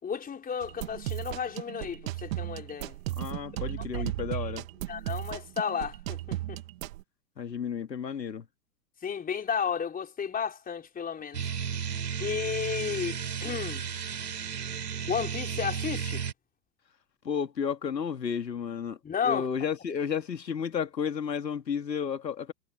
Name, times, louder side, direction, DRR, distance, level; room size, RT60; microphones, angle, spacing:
voice 1, 0.0-2.9 3.9-4.1 4.9-6.6 9.0-11.4 12.2-13.8 15.1-16.2 19.0-19.5, left 7 dB, 15° left, 4.4 m, -33 dB
sound 1, 0.6-7.0, right 16 dB, 50° right, 1.3 m, -36 dB
voice 2, 3.2-4.7 7.4-8.4 17.2-19.0 19.2-22.5, left 7 dB, 80° left, 2.5 m, -32 dB
sound 2, 11.3-16.3, right 7 dB, 75° right, 7.3 m, -34 dB
figure-of-eight pair, 105°, 50 cm